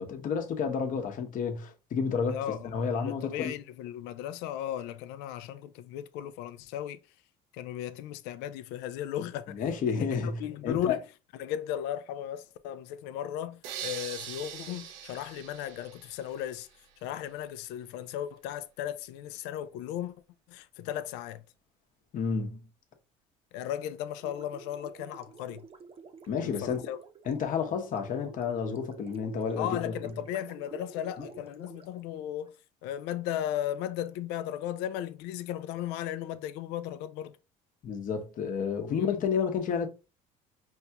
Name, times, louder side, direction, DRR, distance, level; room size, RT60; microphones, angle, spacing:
voice 1, 0.0-3.4 9.5-11.0 22.1-22.7 26.3-26.8 27.3-29.8 31.2-31.3 37.8-39.9, left 6 dB, 50° left, 0.9 m, -30 dB
voice 2, 2.3-7.0 7.5-9.6 10.0-11.0 11.4-16.7 17.0-20.1 20.5-21.4 23.5-25.6 26.4-27.0 29.6-37.4 38.9-39.1, left 11 dB, 80° left, 0.4 m, -36 dB
sound 1, 13.6-16.6, right 9 dB, 90° right, 0.6 m, -42 dB
Gurgling, 24.2-32.6, right 5 dB, 35° right, 0.7 m, -50 dB
5.4 x 2.3 x 2.8 m
supercardioid pair, 90°, 17 cm